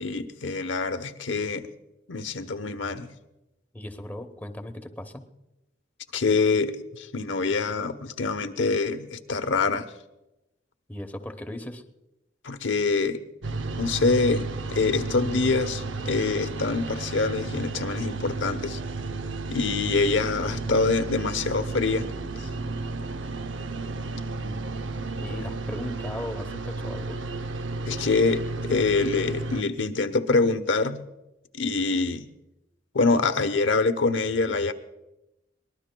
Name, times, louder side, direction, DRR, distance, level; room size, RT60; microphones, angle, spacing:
voice 1, 0.0-1.7 2.1-3.1 6.1-9.9 12.4-13.2 13.8-18.8 19.5-22.1 22.4-22.5 27.9-31.0 31.6-32.3 32.9-34.7, left 4 dB, 80° left, 9 dB, 0.9 m, -25 dB
voice 2, 3.7-5.2 10.9-11.8 24.4-24.7 25.2-27.2, left 1 dB, 10° left, 5 dB, 1.0 m, -37 dB
sound 1, 13.4-29.6, right 3 dB, 85° right, 0.6 m, -33 dB
23.0 x 20.0 x 2.3 m, 0.94 s
head